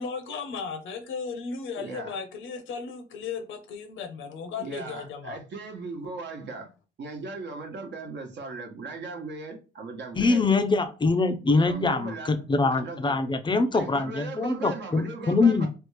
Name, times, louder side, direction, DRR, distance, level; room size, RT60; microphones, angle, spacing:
voice 1, 0.0-5.4, left 5 dB, 75° left, 0.8 m, -35 dB
voice 2, 1.8-2.1 4.6-6.7 7.0-10.4 11.5-12.4 12.8-13.2 13.7-15.7, right 3 dB, 60° right, 1.0 m, -38 dB
voice 3, 10.2-15.7, left 3 dB, 25° left, 0.4 m, -24 dB
3.4 x 2.4 x 3.2 m
cardioid pair, 90°, 20 cm